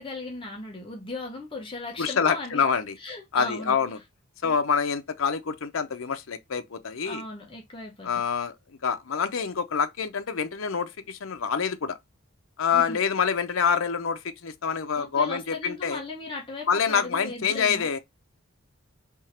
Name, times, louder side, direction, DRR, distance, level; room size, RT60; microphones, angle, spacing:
voice 1, 0.0-2.6 3.0-3.8 4.4-4.5 7.0-8.2 12.7-13.0 15.0-17.9, left 2 dB, 25° left, 1.0 m, -37 dB
voice 2, 2.0-3.0 3.3-4.0 4.4-7.2 8.0-8.5 8.8-12.0 12.6-16.0 16.7-18.0, left 6 dB, 75° left, 0.7 m, -26 dB
3.6 x 2.8 x 4.3 m
head